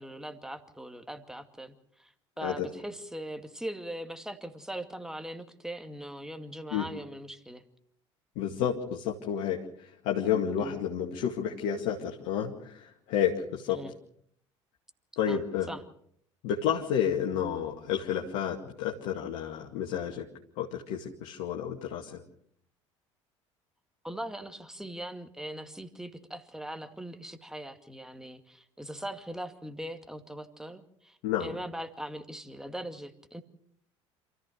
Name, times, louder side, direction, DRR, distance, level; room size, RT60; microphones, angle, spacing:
voice 1, 0.0-7.6 10.6-10.8 13.7-13.9 15.3-15.8 24.0-33.4, right 1 dB, 5° right, 8 dB, 2.2 m, -40 dB
voice 2, 8.4-13.8 15.2-15.7 16.4-20.3 20.6-22.2 31.2-31.5, left 9 dB, 60° left, -1 dB, 2.1 m, -31 dB
27.5 x 14.5 x 6.6 m, 0.68 s
figure-of-eight pair, 60°, 16 cm